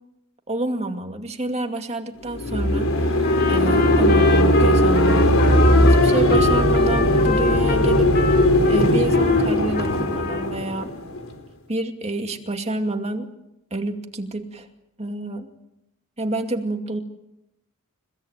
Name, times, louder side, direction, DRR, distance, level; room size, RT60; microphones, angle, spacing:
voice 1, 0.5-3.1 3.5-5.3 5.8-8.1 8.7-10.9 11.7-13.3 13.7-14.7 15.0-15.5 16.2-17.0, right 2 dB, 30° right, 5 dB, 2.4 m, -28 dB
sound 1, 2.3-11.3, left 1 dB, 65° left, 4.4 m, -18 dB
Trumpet, 3.2-9.4 9.7-10.5, left 4 dB, 45° left, 2.9 m, -29 dB
30.0 x 17.5 x 9.1 m, 0.86 s
head